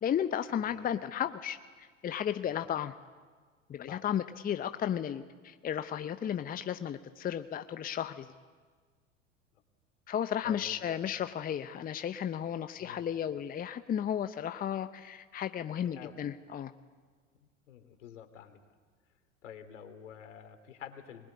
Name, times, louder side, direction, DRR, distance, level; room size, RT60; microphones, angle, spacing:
voice 1, 0.0-2.9 3.7-8.3 10.1-16.7, left 9 dB, 20° left, 10 dB, 0.9 m, -34 dB
voice 2, 10.4-11.1 12.8-13.1 15.9-16.2 17.7-18.6 19.4-21.3, left 9 dB, 70° left, 7 dB, 3.1 m, -48 dB
24.5 x 21.0 x 9.6 m, 1.5 s
figure-of-eight pair, 85°, 39 cm